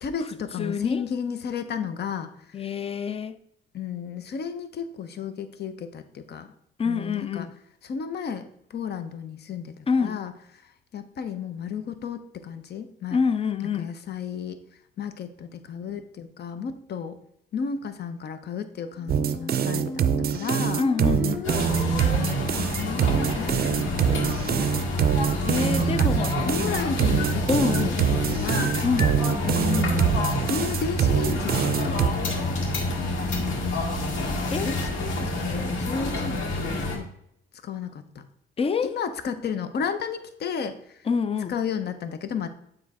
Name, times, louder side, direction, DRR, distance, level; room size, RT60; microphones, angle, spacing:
voice 1, 0.0-2.5 3.7-6.5 6.8-7.5 7.8-10.3 10.9-13.2 13.8-14.6 15.0-17.2 17.5-20.8 22.2-24.9 25.7-26.1 26.4-27.5 28.0-28.8 29.4-30.0 30.5-34.0 34.6-37.1 37.6-38.2 38.8-41.1 41.5-42.5, left 6 dB, 55° left, 0.7 m, -33 dB
voice 2, 0.6-1.0 2.5-3.4 6.8-7.5 9.9-10.2 13.1-13.9 20.8-21.5 25.4-26.3 27.5-28.0 28.8-29.1 34.5-34.7 38.6-38.9 41.1-41.5, left 5 dB, 30° left, 0.4 m, -26 dB
sound 1, 19.0-24.9, equal, 10° left, 2.1 m, -37 dB
sound 2, 19.1-32.1, right 8 dB, 50° right, 0.4 m, -24 dB
sound 3, 21.4-37.0, left 2 dB, 85° left, 2.0 m, -28 dB
7.2 x 3.2 x 4.8 m
cardioid pair, 90°, 20 cm